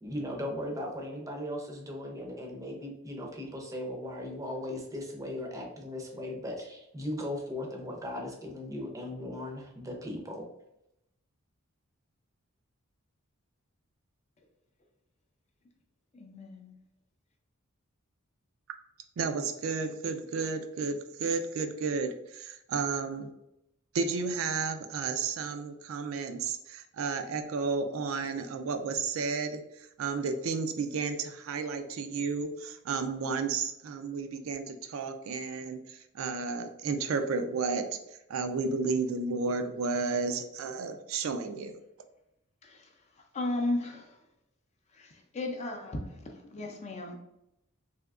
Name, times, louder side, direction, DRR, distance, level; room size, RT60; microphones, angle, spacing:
voice 1, 0.0-10.5, left 1 dB, 15° right, 0 dB, 0.6 m, -38 dB
voice 2, 16.1-16.8 42.6-42.9 43.3-44.2 44.9-47.2, left 2 dB, 30° left, 3 dB, 0.4 m, -35 dB
voice 3, 19.2-23.3 23.9-37.8 38.3-41.7, right 4 dB, 65° right, 7 dB, 0.3 m, -32 dB
3.4 x 2.8 x 2.3 m, 0.83 s
head